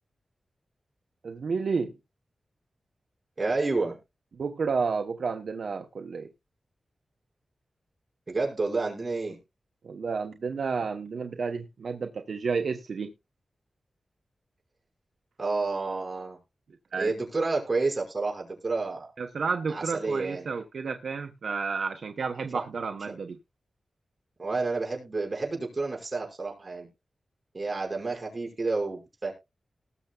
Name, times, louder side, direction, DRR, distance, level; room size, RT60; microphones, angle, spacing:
voice 1, 1.2-1.9 4.3-6.3 9.8-13.1 16.9-17.1 19.2-23.4, right 5 dB, 75° right, 5 dB, 1.0 m, -31 dB
voice 2, 3.4-4.0 8.3-9.4 15.4-16.4 17.0-19.1 19.7-20.5 22.5-22.6 23.1-23.2 24.4-26.9 27.5-29.3, right 3 dB, 35° right, 0 dB, 5.8 m, -30 dB
19.5 x 6.7 x 2.4 m, 0.25 s
wide cardioid pair, 100°, 0 cm